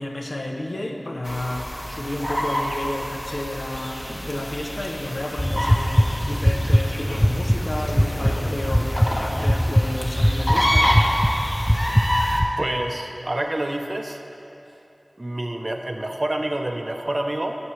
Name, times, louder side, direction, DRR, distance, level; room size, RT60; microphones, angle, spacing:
voice 1, 0.0-11.1, left 1 dB, 80° left, 2 dB, 0.8 m, -31 dB
sound 1, 1.2-12.4, equal, 25° left, 1.1 m, -28 dB
sound 2, 4.2-10.9, left 1 dB, 40° left, 0.7 m, -41 dB
sound 3, 5.4-12.5, equal, ahead, 0.3 m, -22 dB
voice 2, 12.6-14.2 15.2-17.6, right 1 dB, 50° right, 3 dB, 0.5 m, -27 dB
16.5 x 6.0 x 3.2 m, 2.9 s
wide cardioid pair, 50°, 0 cm